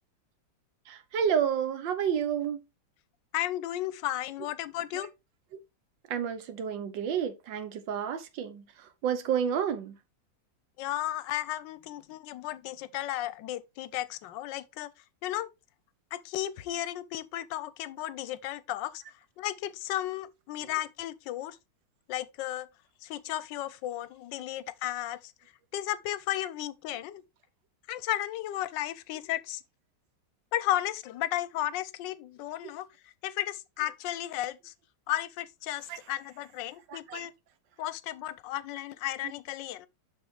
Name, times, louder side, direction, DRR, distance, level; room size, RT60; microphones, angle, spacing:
voice 1, 0.9-2.6 4.9-5.0 6.1-8.6 9.0-10.0 35.9-36.0 36.9-37.2, right 8 dB, 90° right, 1.6 m, -30 dB
voice 2, 3.3-5.1 10.8-14.9 15.2-15.5 16.1-19.0 19.4-21.6 22.1-22.7 23.0-25.3 25.7-27.2 27.9-29.6 30.5-34.7 35.1-37.3 37.8-39.9, left 13 dB, 85° left, 1.3 m, -34 dB
7.0 x 6.1 x 3.2 m
omnidirectional pair, 1.9 m